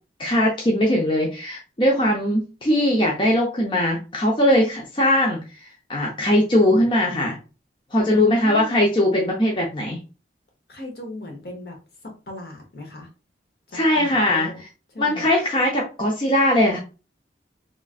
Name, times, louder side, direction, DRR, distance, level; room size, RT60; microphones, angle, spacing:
voice 1, 0.2-5.4 5.9-7.4 7.9-10.0 13.7-14.5 15.0-16.8, left 1 dB, 30° left, -1 dB, 0.5 m, -20 dB
voice 2, 8.1-8.8 10.7-11.8 12.3-13.1 13.7-14.6 14.9-15.3, left 1 dB, 60° left, 2 dB, 0.8 m, -36 dB
3.1 x 2.4 x 2.3 m, 0.32 s
head